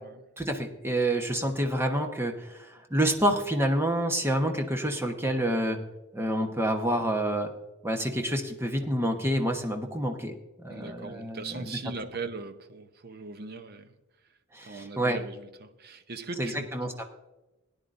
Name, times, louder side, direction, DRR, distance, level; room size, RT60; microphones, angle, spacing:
voice 1, 0.4-5.8 6.1-7.5 7.8-11.8 14.5-15.2 16.4-17.0, right 1 dB, 15° right, 1.1 m, -28 dB
voice 2, 10.7-14.0 14.6-17.0, right 4 dB, 50° right, 0.8 m, -40 dB
18.0 x 9.9 x 2.6 m
head